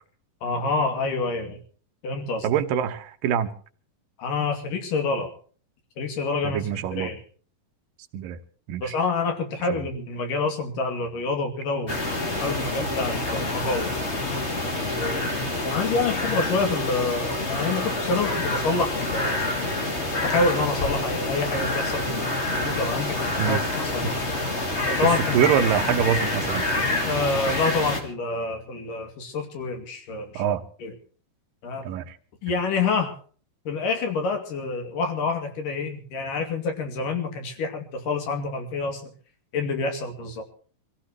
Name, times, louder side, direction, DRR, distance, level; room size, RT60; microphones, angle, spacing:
voice 1, 0.4-1.6 2.0-2.5 4.2-5.3 6.0-6.6 6.9-7.2 8.8-12.0 12.4-13.9 14.9-15.2 15.6-19.4 20.2-22.3 22.6-23.2 23.5-24.2 24.9-25.4 27.0-30.4 30.8-30.9 31.6-31.8 32.4-33.1 33.7-39.0 39.5-40.4, left 3 dB, 75° left, 5 dB, 4.2 m, -27 dB
voice 2, 2.4-3.5 6.4-7.1 8.1-8.4 8.7-9.0 9.7-9.8 23.4-23.6 24.0-24.1 25.0-26.7 30.3-30.6 31.8-32.2, right 9 dB, 85° right, 9 dB, 2.7 m, -25 dB
sound 1, 11.9-28.0, left 2 dB, 20° left, 2.4 m, -27 dB
25.5 x 16.0 x 3.0 m, 0.43 s
omnidirectional pair, 3.9 m